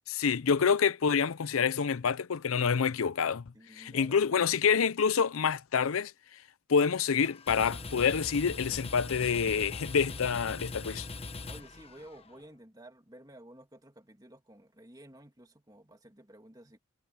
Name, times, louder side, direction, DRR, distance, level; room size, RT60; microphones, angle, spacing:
voice 1, 0.1-3.4 3.8-6.1 6.7-11.0, left 6 dB, 80° left, 0.6 m, -27 dB
voice 2, 3.5-4.6 11.5-16.8, right 1 dB, 20° right, 2.5 m, -53 dB
sound 1, 7.2-12.4, left 3 dB, 30° left, 1.2 m, -41 dB
head